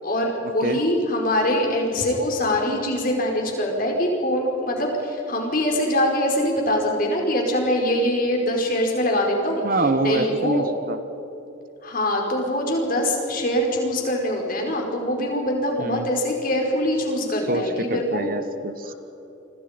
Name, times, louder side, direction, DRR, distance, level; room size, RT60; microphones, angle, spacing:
voice 1, 0.0-9.6 10.0-10.6 11.8-18.3 18.9-19.0, left 1 dB, 45° left, 1 dB, 4.9 m, -23 dB
voice 2, 9.6-11.0 15.8-16.1 17.5-18.9, right 2 dB, 45° right, 10 dB, 1.1 m, -25 dB
29.5 x 25.5 x 5.3 m, 3.0 s
head